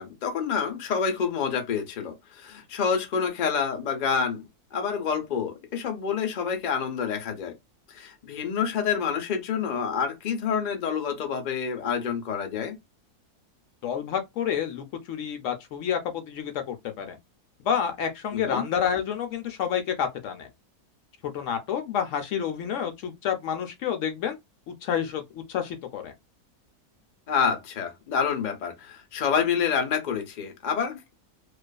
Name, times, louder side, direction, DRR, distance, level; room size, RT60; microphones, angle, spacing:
voice 1, 0.0-4.4 4.7-7.5 7.9-12.8 18.3-18.6 27.3-31.2, left 6 dB, 85° left, 0.4 m, -28 dB
voice 2, 13.8-17.2 17.6-20.5 21.2-24.4 24.7-26.1, left 8 dB, 65° left, 0.8 m, -29 dB
2.4 x 2.4 x 2.2 m
omnidirectional pair, 1.7 m